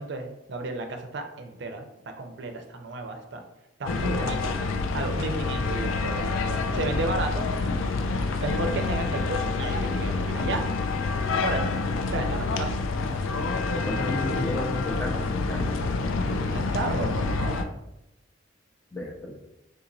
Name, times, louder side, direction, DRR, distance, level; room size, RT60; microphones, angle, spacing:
voice 1, 0.0-1.9 2.2-3.4 3.8-4.6 4.9-7.5 8.4-10.7 11.4-11.7 12.1-12.8 16.5-17.7, right 2 dB, 60° right, 5 dB, 0.4 m, -33 dB
sound 1, 3.9-17.6, left 3 dB, 90° left, 0.3 m, -27 dB
voice 2, 13.7-15.6 18.9-19.4, left 1 dB, 10° left, 0 dB, 0.4 m, -33 dB
3.7 x 2.9 x 2.6 m, 0.88 s
head